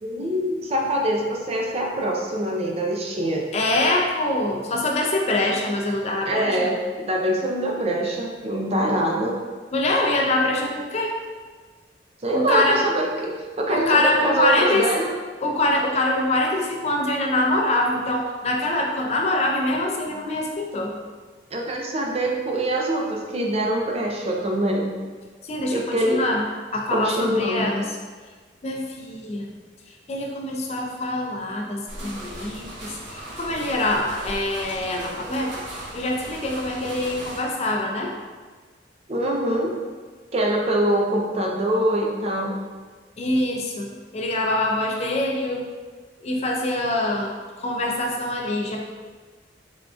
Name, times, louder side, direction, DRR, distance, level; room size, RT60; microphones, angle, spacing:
voice 1, 0.0-3.4 6.3-9.4 12.2-15.1 21.5-24.9 25.7-26.2 26.9-27.8 39.1-39.7 40.3-42.6, right 1 dB, 35° right, -1 dB, 0.5 m, -24 dB
voice 2, 3.5-6.7 9.7-11.2 12.3-12.8 13.7-14.9 15.4-20.9 25.5-26.4 26.7-28.0 28.6-29.5 30.1-35.5 35.9-38.1 43.2-45.7 46.2-47.3 47.6-48.8, left 1 dB, 35° left, 0 dB, 0.4 m, -24 dB
sound 1, 31.9-37.4, right 1 dB, 90° right, 1.1 m, -37 dB
3.7 x 3.4 x 2.4 m, 1.4 s
head